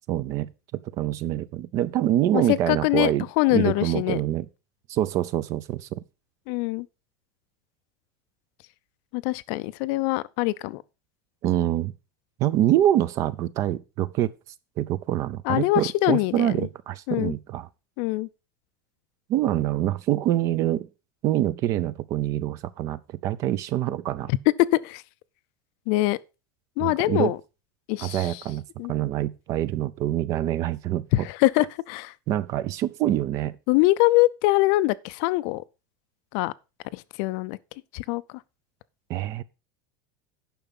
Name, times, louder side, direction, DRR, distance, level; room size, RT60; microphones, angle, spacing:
voice 1, 0.1-4.5 4.9-6.0 11.4-11.9 12.4-14.3 14.8-17.7 19.3-20.9 21.2-24.3 26.8-27.3 28.0-28.6 28.9-31.1 32.3-33.6 39.1-39.4, right 12 dB, 30° right, 0.5 m, -25 dB
voice 2, 2.3-4.2 6.5-6.9 9.1-10.8 15.4-16.7 17.1-17.3 18.0-18.3 24.3-24.4 24.7-25.0 25.9-26.2 26.8-27.4 27.9-28.4 28.8-28.9 31.1-32.1 33.7-35.6 36.3-36.5 36.9-37.6 37.9-38.2, left 19 dB, 45° left, 0.4 m, -23 dB
10.5 x 6.0 x 5.4 m
supercardioid pair, 180°, 10 cm